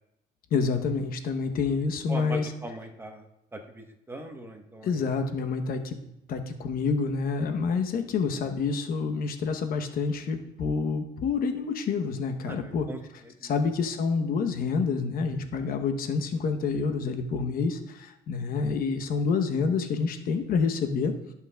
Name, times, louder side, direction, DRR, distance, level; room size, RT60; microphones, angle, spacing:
voice 1, 0.5-2.5 4.8-6.0 6.3-12.9 13.4-21.1, left 5 dB, 60° left, 6 dB, 0.9 m, -28 dB
voice 2, 2.1-3.2 3.5-5.0 12.4-13.0 13.4-13.5, right 2 dB, 15° right, 3 dB, 1.1 m, -40 dB
15.0 x 5.9 x 2.3 m, 0.83 s
cardioid pair, 110°, 17 cm